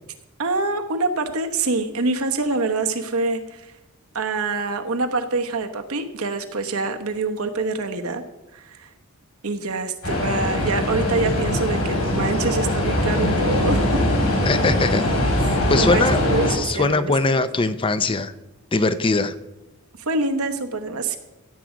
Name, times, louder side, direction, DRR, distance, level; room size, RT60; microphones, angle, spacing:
voice 1, 0.4-3.7 4.1-8.2 8.5-8.9 9.4-14.0 15.8-17.4 20.0-21.2, right 3 dB, 80° right, 5 dB, 1.1 m, -25 dB
sound 1, 10.0-16.5, left 1 dB, 75° left, 4.7 m, -21 dB
voice 2, 14.4-15.0 15.7-16.2 16.5-18.3 18.7-19.3, left 3 dB, 25° left, 13 dB, 0.4 m, -21 dB
15.5 x 7.6 x 5.0 m, 1.0 s
head